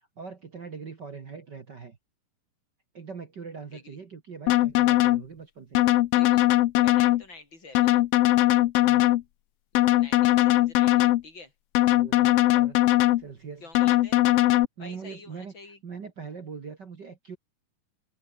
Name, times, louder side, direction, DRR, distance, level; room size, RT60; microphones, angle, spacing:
voice 1, 0.2-2.0 2.9-5.9 8.8-9.1 11.9-12.8 13.2-13.6 14.8-15.5 15.8-17.4, right 5 dB, 40° right, 1.9 m, -41 dB
sound 1, 4.5-5.2 5.7-7.2 7.7-9.2 9.7-11.2 11.7-13.2 13.7-14.7, left 15 dB, 85° left, 1.3 m, -20 dB
voice 2, 6.1-6.4 6.8-8.0 10.0-11.5 13.6-14.2 14.8-15.8, left 3 dB, 35° left, 6.1 m, -47 dB
omnidirectional pair, 3.7 m